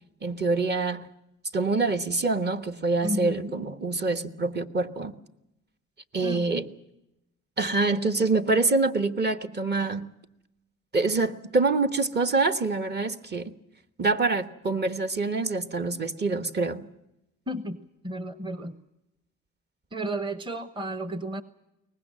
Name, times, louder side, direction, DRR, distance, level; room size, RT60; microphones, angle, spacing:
voice 1, 0.2-1.1 1.5-5.1 6.1-6.7 7.6-10.1 10.9-13.5 14.0-16.9, right 3 dB, 35° right, 1.3 m, -26 dB
voice 2, 3.0-3.5 6.2-6.4 17.5-17.8 18.0-18.8 19.9-21.4, right 1 dB, 15° right, 1.0 m, -32 dB
23.0 x 19.5 x 7.6 m
cardioid pair, 90°, 30 cm